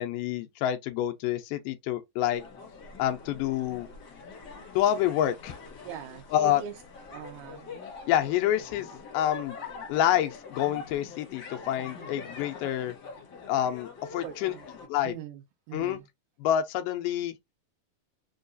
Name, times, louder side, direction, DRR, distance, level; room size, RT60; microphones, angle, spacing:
voice 1, 0.0-2.4 3.0-3.9 4.8-5.5 6.3-6.6 8.1-9.6 9.9-13.0 13.5-14.5 14.9-15.1 15.7-16.0 16.4-17.3, left 11 dB, 85° left, 2.2 m, -27 dB
sound 1, 2.3-14.9, left 4 dB, 55° left, 1.2 m, -44 dB
voice 2, 5.8-6.8 7.1-7.7 14.2-14.7 15.0-15.4 15.7-16.1, right 9 dB, 80° right, 2.1 m, -41 dB
5.4 x 2.3 x 2.6 m
omnidirectional pair, 3.8 m